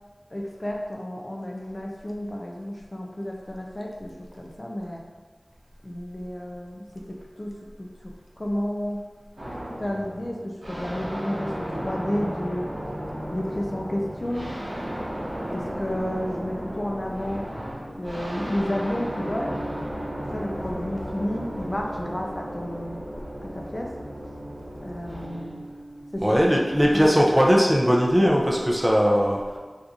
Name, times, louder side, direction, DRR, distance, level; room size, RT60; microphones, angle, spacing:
voice 1, 0.3-5.0 5.8-9.1 9.8-12.7 13.3-14.6 15.5-17.5 17.9-19.6 20.3-23.0 23.4-23.9 24.8-25.6 26.1-26.2 26.9-27.1, left 1 dB, 35° left, -1 dB, 0.4 m, -31 dB
sound 1, 9.4-27.4, equal, 85° right, 0.9 m, -35 dB
voice 2, 26.2-29.6, equal, 15° right, -2 dB, 0.5 m, -19 dB
2.8 x 2.5 x 3.6 m, 1.4 s
wide cardioid pair, 50°, 0 cm